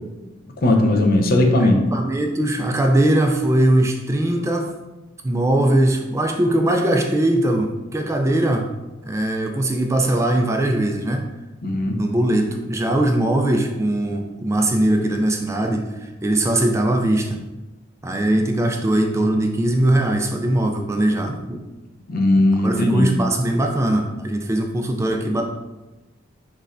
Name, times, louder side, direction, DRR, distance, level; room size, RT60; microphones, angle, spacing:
voice 1, 0.6-1.8 11.6-12.0 22.1-23.1, left 1 dB, 50° left, 3 dB, 0.6 m, -17 dB
voice 2, 1.6-4.7 5.2-8.7 9.0-11.3 11.9-17.4 18.0-21.6 22.6-25.4, right 1 dB, 15° right, 3 dB, 0.3 m, -20 dB
6.3 x 3.2 x 2.5 m, 1.1 s
head